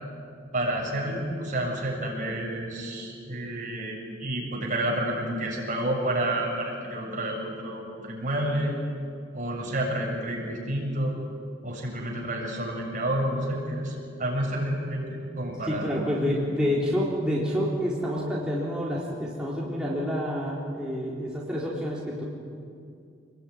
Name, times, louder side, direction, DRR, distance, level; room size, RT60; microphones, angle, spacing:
voice 1, 0.5-8.8 9.3-11.2 11.6-15.9, right 1 dB, 40° right, -1 dB, 7.1 m, -30 dB
voice 2, 15.6-22.2, equal, 5° right, -6 dB, 3.9 m, -28 dB
27.5 x 21.0 x 9.9 m, 2.4 s
head